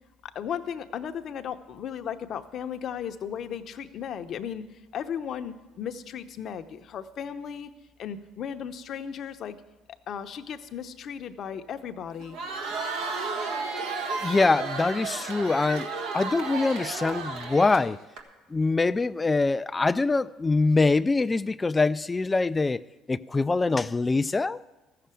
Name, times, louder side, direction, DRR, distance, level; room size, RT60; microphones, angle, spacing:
voice 1, 0.2-4.7 4.9-7.7 8.0-9.6 10.1-12.4, left 8 dB, 55° left, 0.8 m, -35 dB
Crowd, 12.2-18.2, right 4 dB, 80° right, 1.6 m, -33 dB
voice 2, 14.2-18.0 18.5-22.8 23.1-24.6, left 3 dB, 20° left, 0.3 m, -24 dB
14.5 x 6.8 x 7.6 m
supercardioid pair, 95°, 0 cm